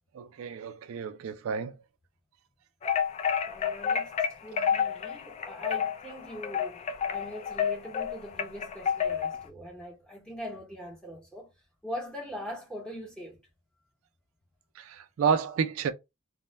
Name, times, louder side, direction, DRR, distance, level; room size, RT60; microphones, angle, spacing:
voice 1, 0.1-1.8 14.8-15.9, right 6 dB, 80° right, 0.3 m, -30 dB
sound 1, 2.8-9.4, left 7 dB, 30° left, 0.3 m, -30 dB
voice 2, 3.4-4.1 4.4-6.8 7.1-11.5 11.8-13.4, equal, 5° left, 0.9 m, -42 dB
2.2 x 2.1 x 3.1 m
head